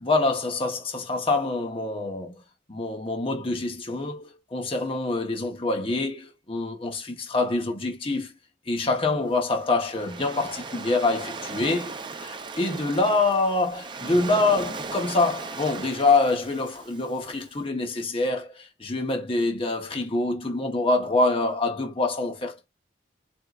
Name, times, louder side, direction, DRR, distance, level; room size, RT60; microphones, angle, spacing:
voice 1, 0.0-2.3 2.7-8.3 8.7-11.9 12.2-22.7, left 3 dB, 30° left, 0.9 m, -25 dB
Waves surf, 9.3-17.5, right 4 dB, 25° right, 0.6 m, -38 dB
4.4 x 3.6 x 2.4 m
head